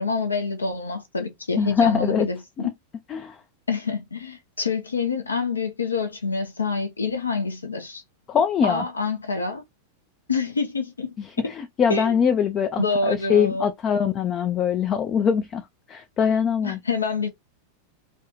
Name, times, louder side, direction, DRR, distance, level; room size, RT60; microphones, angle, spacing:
voice 1, 0.0-2.7 3.7-8.0 8.6-9.6 10.3-11.1 11.9-12.1 12.8-13.7 16.6-17.3, left 4 dB, 75° left, 0.6 m, -27 dB
voice 2, 1.6-2.3 2.6-2.7 3.1-3.4 8.3-8.8 11.2-16.8, left 7 dB, 30° left, 0.3 m, -23 dB
2.5 x 2.3 x 2.9 m
figure-of-eight pair, 90°, 0 cm